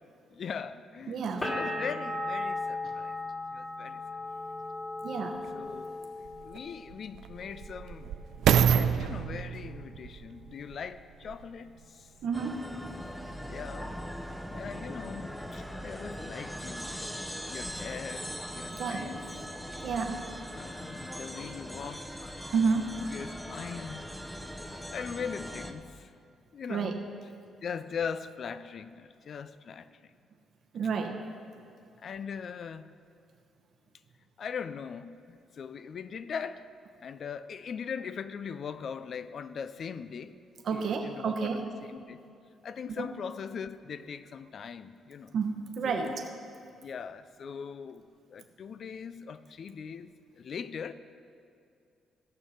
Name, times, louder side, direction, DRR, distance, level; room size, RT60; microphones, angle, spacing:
voice 1, 0.3-3.2 3.5-4.0 5.5-8.2 8.6-12.1 13.5-14.0 14.5-17.0 17.5-19.5 20.5-22.4 23.1-24.1 24.7-26.1 26.5-27.3 27.6-30.1 32.0-32.9 34.4-36.7 37.0-40.4 40.7-42.2 42.6-45.3 45.8-46.2 46.8-50.1 50.4-50.9, left 6 dB, 55° left, 13 dB, 0.5 m, -40 dB
voice 2, 1.1-1.5 5.0-5.4 12.2-12.6 18.7-19.1 19.8-20.2 22.5-22.9 26.7-26.9 30.7-31.2 40.6-41.6 43.0-43.1 45.3-46.1, right 5 dB, 65° right, 3 dB, 1.0 m, -30 dB
sound 1, 1.4-7.0 7.3-8.1, left 2 dB, 25° left, 2.1 m, -37 dB
sound 2, 5.4-5.5 6.3-11.6 12.2-12.3, right 8 dB, 80° right, 0.4 m, -28 dB
sound 3, 12.3-25.7, equal, 5° left, 0.8 m, -40 dB
15.5 x 6.6 x 5.7 m, 2.4 s
cardioid pair, 90°, 0 cm